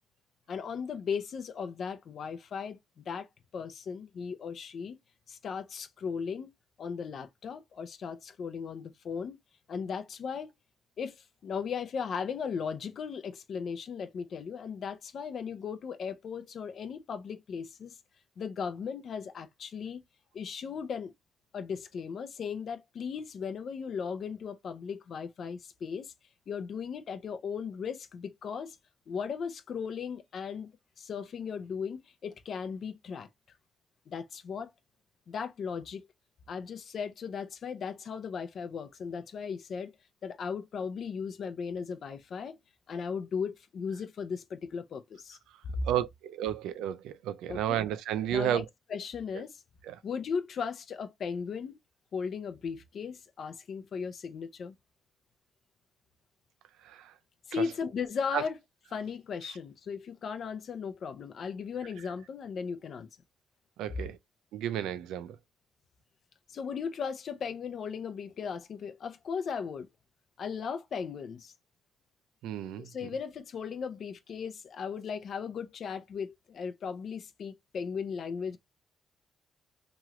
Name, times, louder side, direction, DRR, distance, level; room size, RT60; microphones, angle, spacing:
voice 1, 0.5-3.3 3.5-5.0 5.3-6.5 6.8-9.4 9.7-10.5 11.0-18.0 18.4-20.0 20.3-21.1 21.5-26.1 26.5-28.8 29.1-30.7 31.0-33.3 34.1-34.7 35.3-36.1 36.5-39.9 40.2-42.6 42.9-45.4 45.7-45.9 47.5-47.8 48.3-48.6 48.9-49.6 50.0-51.8 52.1-54.7 57.5-58.6 58.9-63.1 66.5-69.9 70.4-71.5 72.8-78.6, left 6 dB, 60° left, 0.5 m, -37 dB
voice 2, 45.8-48.7 49.8-50.0 56.8-57.1 57.6-57.7 58.3-58.4 63.8-64.2 64.5-65.4 72.4-73.1, right 10 dB, 90° right, 0.3 m, -32 dB
3.0 x 2.4 x 2.9 m
cardioid pair, 80°, 0 cm